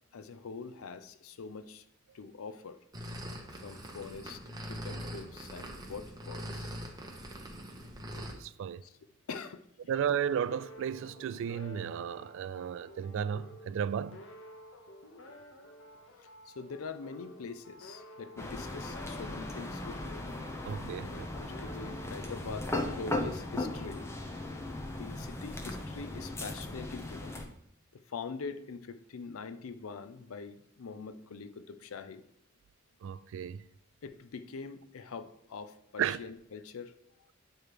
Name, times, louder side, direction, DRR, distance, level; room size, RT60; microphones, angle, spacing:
voice 1, 0.1-1.8 2.1-2.8 3.5-4.4 4.7-6.7 8.8-8.9 9.3-9.6 16.2-20.3 21.0-24.1 24.9-27.4 27.9-32.2 34.0-36.9, left 5 dB, 85° left, 0.5 m, -44 dB
sound 1, 2.9-8.3, equal, 20° right, 1.0 m, -42 dB
voice 2, 8.2-8.8 9.9-14.2 20.6-21.3 33.0-33.7 36.0-36.2, right 8 dB, 65° right, 0.3 m, -34 dB
sound 2, 10.1-25.5, left 1 dB, 65° left, 0.9 m, -52 dB
sound 3, 18.4-27.5, left 2 dB, 15° left, 0.7 m, -38 dB
8.6 x 3.1 x 4.8 m
head